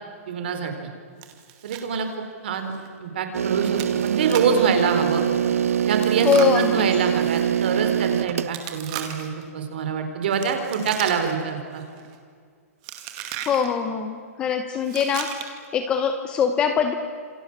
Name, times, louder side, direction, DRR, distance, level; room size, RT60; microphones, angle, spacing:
voice 1, 0.3-0.7 1.6-2.1 2.4-2.7 3.0-5.2 5.9-6.3 6.5-11.8, right 6 dB, 40° right, 6 dB, 4.3 m, -25 dB
Chewing mastication, 1.2-1.9 2.1-2.2 2.7-2.9 3.7-4.6 5.9-7.5 8.5-9.4 10.3-11.5 11.8-12.1 12.8-13.7 14.8-15.7, right 10 dB, 25° right, 2.3 m, -36 dB
sound 1, 3.3-8.5, right 9 dB, 65° right, 0.9 m, -23 dB
voice 2, 6.2-6.9 13.5-16.9, left 6 dB, 10° left, 8 dB, 0.9 m, -23 dB
28.0 x 27.5 x 7.5 m, 2.1 s
hypercardioid pair, 180°, 8 cm